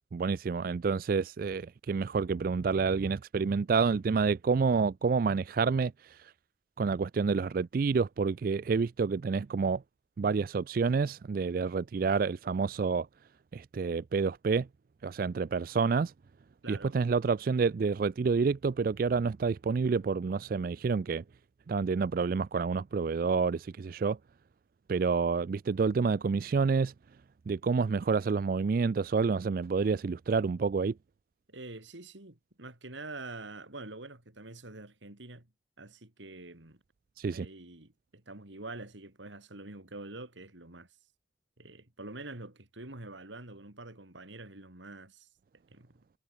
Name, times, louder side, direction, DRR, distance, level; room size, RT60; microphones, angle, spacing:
voice 1, 0.1-6.3 6.8-9.8 10.2-13.1 13.5-14.7 15.0-16.1 16.7-21.2 21.7-24.2 24.9-26.9 27.5-31.0 37.2-37.5, right 5 dB, 50° right, 0.3 m, -28 dB
voice 2, 16.6-17.0 31.5-35.5 35.8-36.8 37.3-40.9 41.6-45.3 45.7-46.0, right 2 dB, 80° right, 3.2 m, -46 dB
head